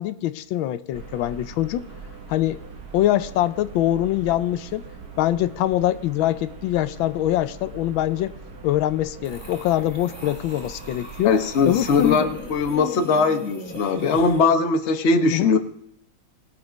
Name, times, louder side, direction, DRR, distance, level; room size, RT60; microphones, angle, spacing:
voice 1, 0.0-1.9 2.3-2.6 2.9-4.8 5.2-8.3 8.6-11.3 11.6-12.3 15.3-15.5, left 13 dB, 90° left, 1.4 m, -23 dB
sound 1, 0.9-12.7, right 4 dB, 55° right, 1.9 m, -41 dB
sound 2, 9.2-14.5, left 1 dB, 5° left, 2.2 m, -39 dB
voice 2, 11.2-15.6, left 4 dB, 45° left, 1.0 m, -20 dB
19.5 x 6.7 x 5.1 m
omnidirectional pair, 2.1 m